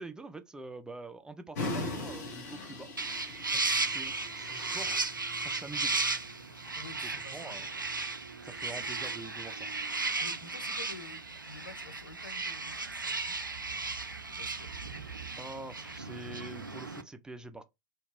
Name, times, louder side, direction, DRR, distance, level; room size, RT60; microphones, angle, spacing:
voice 1, 0.0-2.9 3.5-5.0 5.4-6.0 7.0-7.7 8.4-9.7 15.4-17.6, right 2 dB, 5° right, 0.3 m, -45 dB
sound 1, 1.6-6.7, left 2 dB, 55° left, 1.1 m, -40 dB
sound 2, 3.0-17.0, right 3 dB, 85° right, 0.4 m, -35 dB
voice 2, 6.8-7.8 10.2-13.4 14.2-15.0, left 3 dB, 80° left, 0.6 m, -50 dB
2.8 x 2.2 x 3.4 m
figure-of-eight pair, 90°, 10 cm